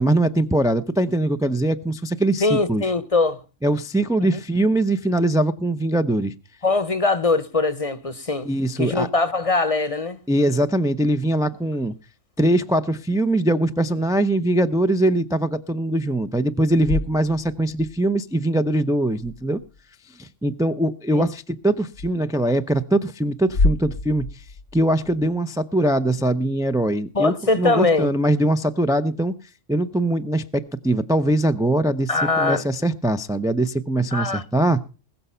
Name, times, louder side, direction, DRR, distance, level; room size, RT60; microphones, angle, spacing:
voice 1, 0.0-2.9 3.6-6.3 8.4-9.1 10.3-11.9 12.4-19.6 20.2-24.4 24.7-29.3 29.7-32.1 32.4-34.8, right 1 dB, 5° right, 0.3 m, -22 dB
voice 2, 2.4-3.4 6.6-8.5 8.8-10.2 21.1-21.3 27.1-28.1 32.1-32.6 34.1-34.4, left 3 dB, 30° left, 0.8 m, -21 dB
sound 1, 19.5-19.8 21.9-22.1 23.4-25.4, left 2 dB, 85° left, 1.6 m, -28 dB
20.5 x 6.8 x 5.6 m
omnidirectional pair, 1.4 m